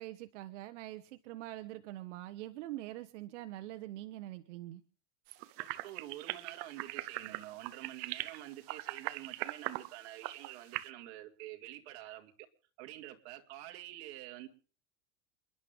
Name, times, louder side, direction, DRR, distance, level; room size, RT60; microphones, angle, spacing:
voice 1, 0.0-4.8, right 15 dB, 85° right, 1.0 m, -44 dB
sound 1, 5.3-10.9, right 18 dB, 40° right, 0.7 m, -40 dB
voice 2, 5.6-12.5 12.8-14.5, right 14 dB, 60° right, 2.4 m, -47 dB
29.0 x 11.0 x 3.5 m
supercardioid pair, 160°, 36 cm